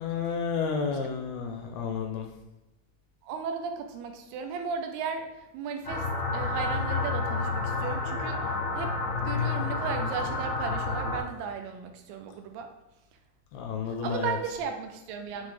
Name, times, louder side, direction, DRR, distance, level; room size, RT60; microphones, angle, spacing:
voice 1, 0.0-2.3 13.5-14.3, left 5 dB, 80° left, 3 dB, 2.3 m, -31 dB
voice 2, 3.2-6.1 6.3-9.0 9.2-12.7 13.9-15.5, right 6 dB, 85° right, 6 dB, 2.5 m, -36 dB
sound 1, 5.8-11.2, left 3 dB, 60° left, 1.3 m, -30 dB
7.2 x 4.0 x 3.3 m, 1.0 s
omnidirectional pair, 4.6 m